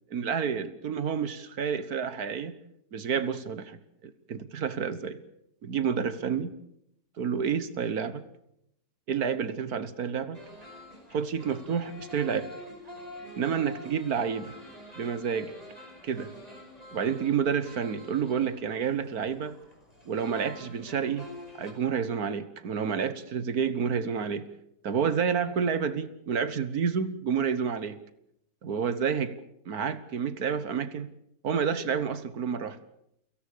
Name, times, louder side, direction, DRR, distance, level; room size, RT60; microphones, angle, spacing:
voice 1, 0.1-2.5 2.9-5.2 5.6-6.5 7.2-8.3 9.1-10.4 11.1-12.5 13.4-14.6 15.0-15.5 16.0-16.3 16.9-19.6 20.1-21.3 21.6-24.5 24.8-28.0 28.6-29.3 29.7-31.1 31.4-32.8, right 7 dB, 60° right, 1.6 m, -29 dB
sound 1, 10.3-21.7, left 1 dB, 20° right, 5.1 m, -47 dB
29.5 x 18.0 x 6.8 m
omnidirectional pair, 1.9 m